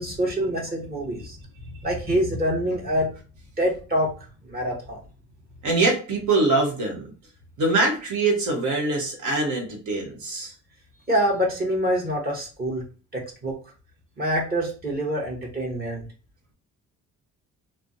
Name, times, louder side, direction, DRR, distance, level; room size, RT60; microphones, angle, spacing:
voice 1, 0.0-1.4 1.8-3.1 3.6-4.1 4.5-5.0 11.1-12.9 13.1-13.5 14.2-16.1, equal, 30° right, -2 dB, 1.1 m, -25 dB
voice 2, 5.6-7.1 7.6-10.5, right 3 dB, 75° right, 1 dB, 1.1 m, -23 dB
3.2 x 2.1 x 2.6 m, 0.36 s
cardioid pair, 90°, 30 cm